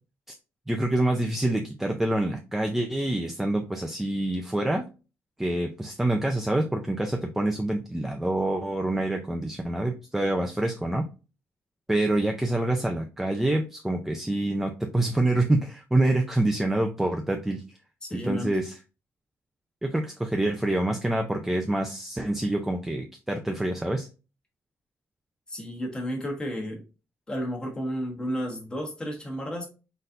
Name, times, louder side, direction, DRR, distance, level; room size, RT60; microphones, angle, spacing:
voice 1, 0.7-4.9 5.4-11.0 11.9-17.6 18.1-18.8 19.8-24.1, right 1 dB, 5° right, 3 dB, 0.5 m, -26 dB
voice 2, 18.0-18.6 25.5-26.8 27.3-29.7, equal, 15° left, 0 dB, 1.3 m, -32 dB
4.2 x 3.9 x 2.6 m, 0.31 s
cardioid pair, 145°, 5 cm